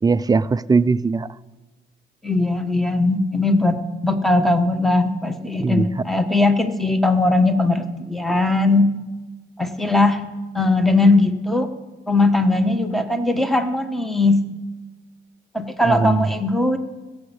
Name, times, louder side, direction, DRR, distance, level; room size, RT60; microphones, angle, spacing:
voice 1, 0.0-1.3 5.5-5.9 15.8-16.3, right 4 dB, 20° right, 15 dB, 0.4 m, -19 dB
voice 2, 2.2-8.9 9.6-10.2 10.5-11.7 12.1-14.4 15.5-16.8, left 2 dB, ahead, 8 dB, 1.1 m, -19 dB
16.5 x 7.1 x 8.1 m, 1.2 s
cardioid pair, 105°, 21 cm